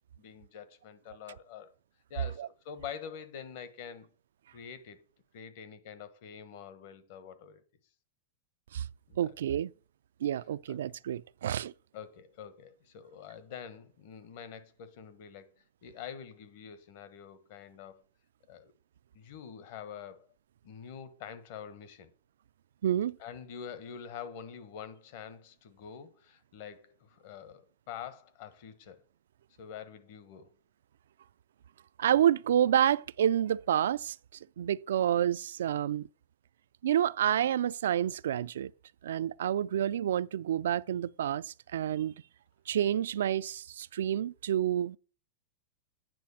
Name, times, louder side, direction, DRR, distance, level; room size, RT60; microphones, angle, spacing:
voice 1, 0.2-1.7 2.1-4.1 4.5-5.0 5.3-7.6 9.1-9.3 10.7-10.8 11.9-18.0 18.5-18.7 19.1-20.3 20.6-22.1 23.2-29.0 29.6-30.5, left 8 dB, 55° left, 1.3 m, -46 dB
voice 2, 9.2-9.7 10.2-11.7 22.8-23.2 32.0-34.2 34.6-36.0 36.8-38.7 39.0-42.1 42.7-45.0, right 10 dB, 85° right, 0.3 m, -29 dB
9.3 x 4.2 x 7.2 m
supercardioid pair, 150°, 0 cm